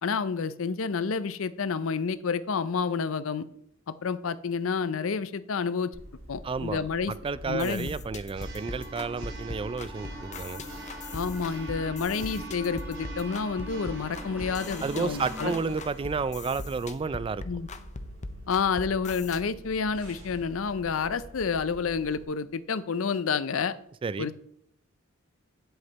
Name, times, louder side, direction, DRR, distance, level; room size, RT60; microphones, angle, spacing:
voice 1, 0.0-3.5 3.9-5.9 6.3-7.1 7.5-7.9 11.1-15.5 17.5-17.7 18.5-23.7 24.2-24.4, left 5 dB, 85° left, 15 dB, 0.5 m, -29 dB
Church bell, 5.9-22.2, right 1 dB, 75° right, 2.5 m, -45 dB
voice 2, 6.4-10.6 14.8-17.4 24.0-24.3, right 4 dB, 25° right, 17 dB, 0.3 m, -31 dB
sound 1, 7.4-19.4, left 3 dB, 35° left, 0.7 m, -41 dB
sound 2, 8.1-15.6, right 1 dB, 10° right, 0.9 m, -45 dB
9.7 x 7.9 x 4.1 m, 0.71 s
head